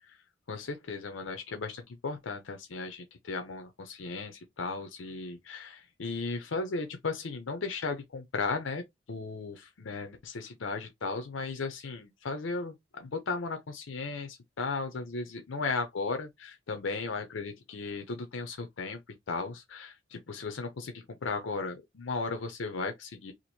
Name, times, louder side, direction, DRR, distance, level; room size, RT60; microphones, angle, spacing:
voice 1, 0.5-8.8 9.1-19.0 19.3-23.3, left 4 dB, 80° left, 0.6 m, -36 dB
2.9 x 2.5 x 4.2 m
head